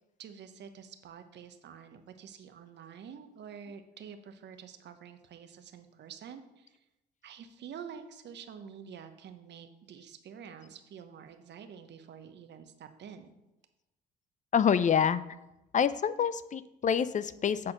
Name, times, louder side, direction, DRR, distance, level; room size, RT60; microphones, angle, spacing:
voice 1, 0.2-6.8 7.2-13.4, right 7 dB, 55° right, 8 dB, 1.0 m, -48 dB
voice 2, 14.5-15.2 15.7-17.7, left 7 dB, 35° left, 15 dB, 0.5 m, -27 dB
8.7 x 4.3 x 6.4 m, 0.95 s
hypercardioid pair, 60°, 21 cm